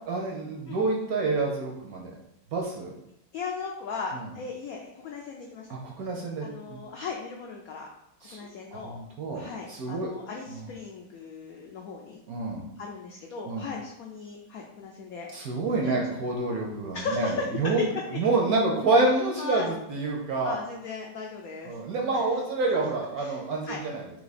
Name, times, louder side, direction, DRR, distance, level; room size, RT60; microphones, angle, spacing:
voice 1, 0.1-2.1 2.5-2.9 4.1-4.3 5.7-6.8 8.2-8.4 8.7-10.1 10.5-10.7 12.3-12.6 13.4-13.6 15.3-17.8 18.2-20.6 21.7-24.0, right 3 dB, 65° right, 0 dB, 0.9 m, -28 dB
voice 2, 3.3-5.7 6.4-7.9 8.3-9.0 9.3-12.2 12.8-15.3 15.5-16.1 16.9-17.5 17.8-17.9 18.1-18.2 19.4-19.7 20.4-21.7 22.1-22.3 22.8-22.9 23.2-23.8, left 4 dB, 90° left, 0 dB, 0.7 m, -37 dB
3.6 x 2.9 x 4.0 m, 0.81 s
omnidirectional pair, 2.0 m